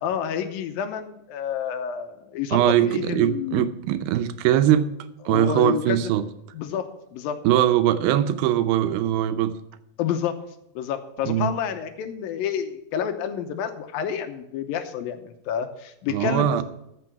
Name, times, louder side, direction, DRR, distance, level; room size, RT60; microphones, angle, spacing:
voice 1, 0.0-2.6 2.9-3.7 5.3-6.1 6.5-6.9 7.1-7.4 10.0-10.4 10.8-16.6, left 8 dB, 80° left, 7 dB, 2.7 m, -29 dB
voice 2, 2.5-4.9 5.3-6.2 7.4-9.6 11.2-11.5 16.1-16.6, right 12 dB, 85° right, 10 dB, 2.6 m, -21 dB
14.0 x 6.1 x 5.9 m, 0.84 s
omnidirectional pair, 4.2 m